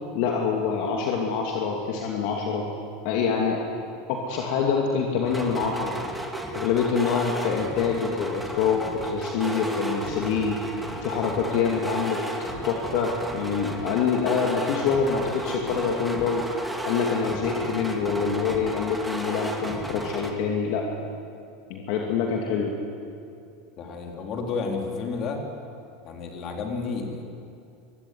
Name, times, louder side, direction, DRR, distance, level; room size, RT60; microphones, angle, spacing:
voice 1, 0.1-2.7 3.0-3.7 4.1-5.9 6.5-12.2 12.6-16.4 16.8-20.9 21.7-22.7, left 5 dB, 65° left, 0 dB, 2.8 m, -25 dB
sound 1, 5.2-20.3, right 1 dB, ahead, 2.4 m, -33 dB
voice 2, 23.8-25.5 26.0-27.2, left 4 dB, 45° left, 2 dB, 4.0 m, -31 dB
23.5 x 15.5 x 9.7 m, 2.5 s
supercardioid pair, 110°, 0 cm